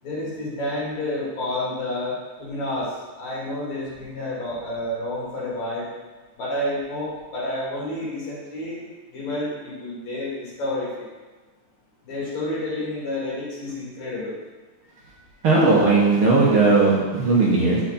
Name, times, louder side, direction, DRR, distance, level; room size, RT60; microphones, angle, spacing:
voice 1, 0.0-5.9 6.4-8.8 9.1-11.1 12.0-14.4, left 1 dB, 65° left, -7 dB, 4.0 m, -29 dB
voice 2, 15.4-17.8, right 3 dB, 55° right, -5 dB, 1.8 m, -17 dB
8.0 x 7.1 x 4.3 m, 1.3 s
omnidirectional pair, 3.4 m